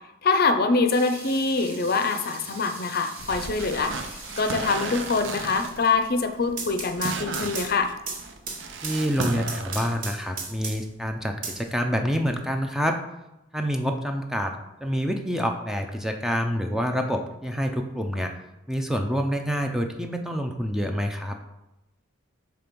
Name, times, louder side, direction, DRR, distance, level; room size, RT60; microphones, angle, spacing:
voice 1, 0.2-7.9, left 4 dB, 50° left, 8 dB, 0.6 m, -24 dB
sound 1, 0.9-6.8, right 3 dB, 80° right, 2.0 m, -43 dB
sound 2, 3.2-10.0, right 4 dB, 65° right, 0.6 m, -35 dB
sound 3, 6.4-11.0 11.4-12.4, right 4 dB, 45° right, 1.0 m, -36 dB
voice 2, 8.8-13.0 13.5-14.5 14.8-18.3 18.7-21.4, equal, ahead, 4 dB, 0.4 m, -27 dB
6.0 x 3.4 x 5.1 m, 0.96 s
head